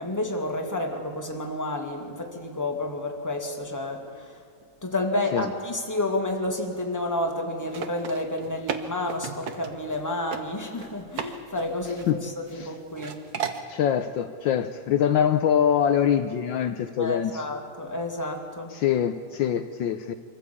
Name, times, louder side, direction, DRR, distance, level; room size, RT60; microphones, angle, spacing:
voice 1, 0.0-4.3 4.8-13.2 17.0-18.7, left 1 dB, 10° left, 2 dB, 2.0 m, -30 dB
sound 1, 7.6-10.0 10.3-10.4 10.8-11.3 11.6-12.6 13.0-13.6, right 7 dB, 55° right, 1.5 m, -34 dB
voice 2, 13.7-17.4 18.7-20.1, left 9 dB, 75° left, 9 dB, 1.4 m, -24 dB
24.5 x 14.5 x 8.4 m, 2.5 s
omnidirectional pair, 2.3 m